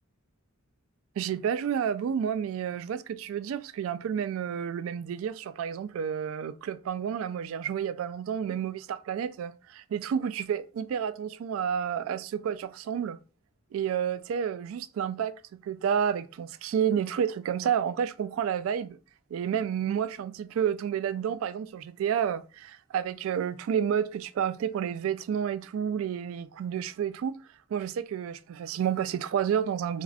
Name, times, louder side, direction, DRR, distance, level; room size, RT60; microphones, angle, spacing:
voice 1, 1.2-13.2 13.7-15.4 15.6-19.0 19.3-27.4 27.7-30.0, right 8 dB, 70° right, 0.3 m, -30 dB
4.7 x 2.1 x 2.4 m
head